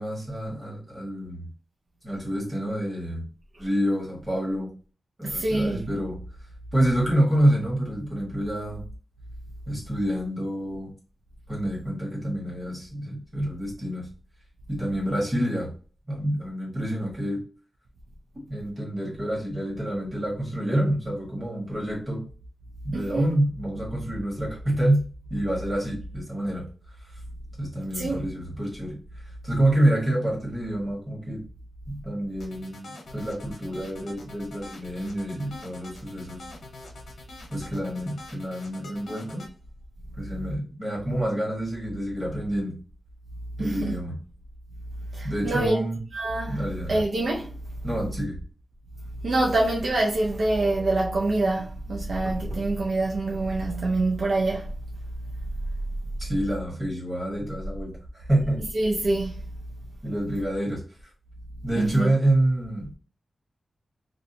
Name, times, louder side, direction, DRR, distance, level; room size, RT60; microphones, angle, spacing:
voice 1, 0.0-1.5 2.0-3.3 3.6-4.7 5.2-6.2 6.7-8.8 9.7-10.9 11.5-14.1 14.7-15.7 16.1-17.4 18.5-22.2 22.8-25.0 25.3-26.7 27.6-29.0 29.4-31.4 31.9-36.5 37.5-39.4 40.2-42.7 43.6-44.2 45.2-46.0 46.5-47.0 47.8-48.4 56.2-58.6 60.0-60.8 61.6-63.0, right 1 dB, 20° right, 1.3 m, -27 dB
voice 2, 5.2-5.9 22.9-23.3 27.9-28.3 43.6-44.0 45.1-45.8 46.1-46.6 46.9-47.5 49.2-54.7 58.7-59.4 61.8-62.1, right 2 dB, 60° right, 0.4 m, -25 dB
sound 1, 32.4-39.5, left 2 dB, 85° left, 0.8 m, -44 dB
2.7 x 2.1 x 2.6 m
wide cardioid pair, 140°, 0 cm